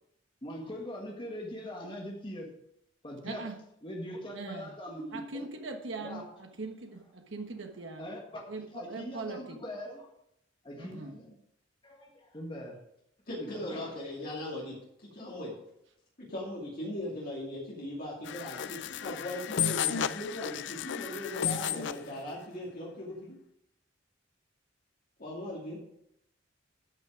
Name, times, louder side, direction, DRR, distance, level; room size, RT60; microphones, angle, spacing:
voice 1, 0.4-2.5 3.0-3.4 3.8-5.4 6.0-6.2 8.0-8.4 8.7-10.0 10.6-11.4 11.8-12.8 13.4-13.9, equal, 25° left, 0 dB, 1.8 m, -41 dB
voice 2, 3.2-3.6 4.3-4.7 5.1-8.1 8.5-9.6 10.7-11.2, right 3 dB, 70° right, 4 dB, 1.3 m, -41 dB
voice 3, 13.3-15.5 16.2-23.4 25.2-25.8, left 1 dB, 50° left, -6 dB, 2.6 m, -39 dB
sound 1, 18.3-22.1, left 9 dB, 65° left, 0.4 m, -33 dB
12.0 x 6.0 x 5.0 m, 0.77 s
head